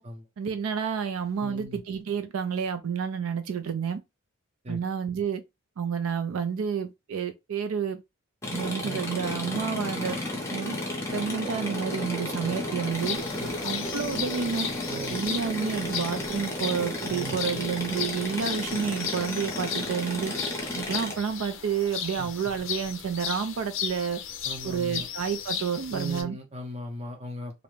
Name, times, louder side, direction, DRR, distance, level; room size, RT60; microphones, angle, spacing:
voice 1, 0.4-4.0 4.7-5.4 5.8-8.0 8.5-10.2 10.5-10.8 11.1-13.2 13.6-14.7 15.1-20.3 20.7-24.2 24.6-26.4, right 7 dB, 80° right, 0.4 m, -30 dB
voice 2, 1.4-1.8 4.6-4.8 8.8-9.0 13.4-13.5 14.9-15.2 17.1-17.6 22.2-22.5 24.4-25.1 25.9-27.6, equal, 30° right, 0.6 m, -38 dB
sound 1, 8.4-21.1, left 1 dB, 15° left, 0.7 m, -33 dB
sound 2, 12.9-26.2, left 8 dB, 60° left, 0.5 m, -36 dB
2.5 x 2.1 x 3.1 m
head